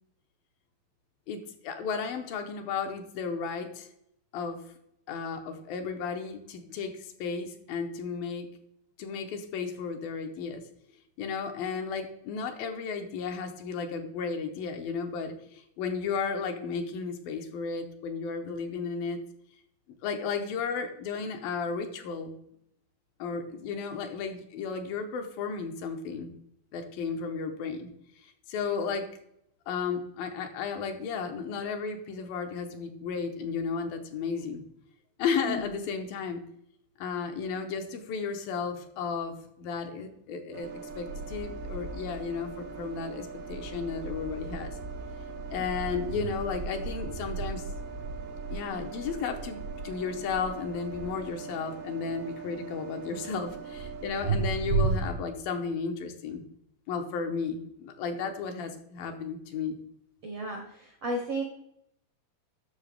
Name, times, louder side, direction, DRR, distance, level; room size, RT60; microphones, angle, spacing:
voice 1, 1.3-3.9 4.3-4.6 5.1-8.5 9.0-10.6 11.2-19.2 20.0-22.4 23.2-26.3 26.7-27.9 28.5-29.1 29.7-34.6 35.2-36.4 37.0-40.7 41.0-44.7 45.5-47.6 48.5-56.5 56.9-59.8, left 5 dB, 75° left, 5 dB, 2.6 m, -34 dB
sound 1, 40.5-55.1, right 4 dB, 85° right, 3.5 m, -36 dB
voice 2, 60.2-61.4, right 1 dB, 70° right, 2 dB, 1.4 m, -33 dB
11.0 x 6.6 x 3.5 m, 0.74 s
omnidirectional pair, 4.3 m